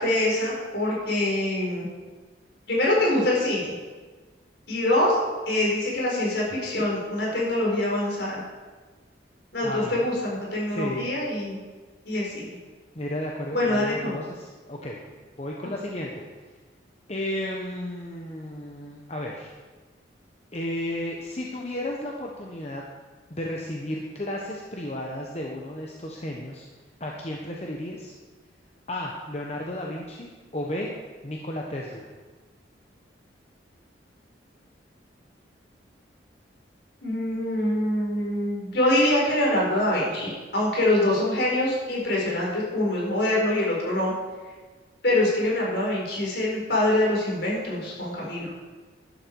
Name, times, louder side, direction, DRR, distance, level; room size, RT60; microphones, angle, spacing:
voice 1, 0.0-1.9 2.7-3.7 4.7-5.2 5.5-8.4 9.5-11.6 12.0-12.5 13.5-14.1 37.0-44.1 45.0-48.5, left 1 dB, 60° left, -4 dB, 4.5 m, -24 dB
voice 2, 9.6-10.1 10.7-11.1 12.9-15.0 15.4-16.2 17.1-19.5 20.5-22.8 23.3-26.6 27.0-28.1 28.9-30.3 30.5-30.9 31.2-32.1, left 1 dB, 35° left, -1 dB, 1.1 m, -33 dB
12.5 x 11.5 x 4.7 m, 1.3 s
head